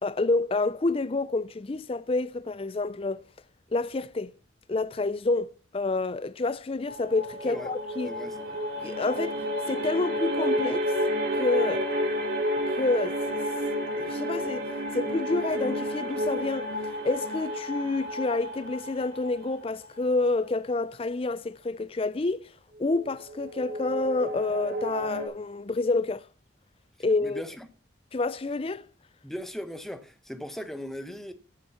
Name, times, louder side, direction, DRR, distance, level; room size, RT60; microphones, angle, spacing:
voice 1, 0.0-3.2 3.7-4.3 4.7-8.2 8.8-10.9 11.4-11.9 12.7-13.4 14.0-14.6 14.9-16.7 17.0-22.5 22.8-26.2 27.0-27.4 28.1-28.9, left 3 dB, 30° left, 0.4 m, -28 dB
sound 1, 6.9-20.0 22.8-25.3, equal, 50° right, 2.5 m, -31 dB
voice 2, 8.0-8.5 27.2-27.7 29.2-31.3, equal, ahead, 0.9 m, -38 dB
8.4 x 7.4 x 6.7 m
head